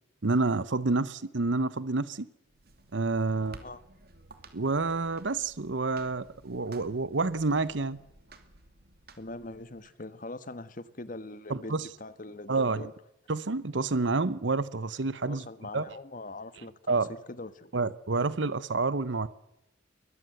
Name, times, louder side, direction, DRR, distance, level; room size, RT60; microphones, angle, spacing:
voice 1, 0.2-2.3 2.9-3.6 4.5-8.0 11.5-11.9 12.5-12.9 13.3-15.4 15.7-15.9 16.9-17.1 17.7-19.3, right 3 dB, 70° right, 16 dB, 0.9 m, -28 dB
sound 1, 2.4-9.9, right 2 dB, 55° right, 2.7 m, -54 dB
voice 2, 9.2-12.9 15.3-17.8, left 2 dB, 45° left, 14 dB, 1.3 m, -42 dB
22.5 x 21.5 x 7.9 m, 0.88 s
head